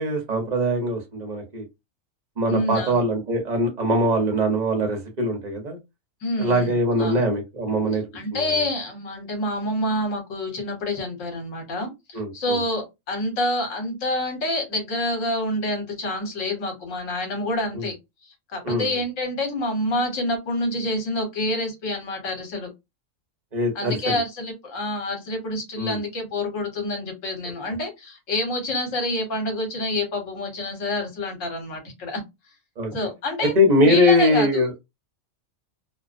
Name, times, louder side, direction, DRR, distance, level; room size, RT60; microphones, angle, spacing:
voice 1, 0.0-1.6 2.4-5.8 6.4-8.0 8.3-8.6 12.1-12.6 17.7-17.9 18.6-19.0 23.5-24.2 25.8-26.0 32.8-32.9 33.5-34.7, equal, 40° right, 0.8 m, -22 dB
voice 2, 2.5-3.0 6.2-7.2 8.1-17.9 18.2-22.7 23.7-32.2 32.9-33.5 33.8-34.6, left 1 dB, 70° left, 1.3 m, -27 dB
2.6 x 2.0 x 2.4 m
omnidirectional pair, 1.4 m